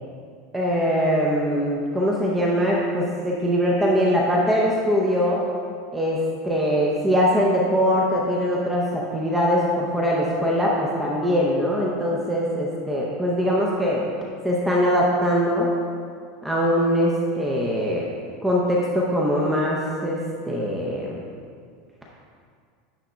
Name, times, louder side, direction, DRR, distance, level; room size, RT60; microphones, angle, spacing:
voice 1, 0.5-5.4 5.9-6.2 6.4-14.0 14.4-15.7 16.4-18.0 18.4-20.2 20.5-21.1, equal, 5° right, -4 dB, 0.6 m, -22 dB
10.0 x 3.5 x 5.0 m, 2.1 s
supercardioid pair, 175°, 0 cm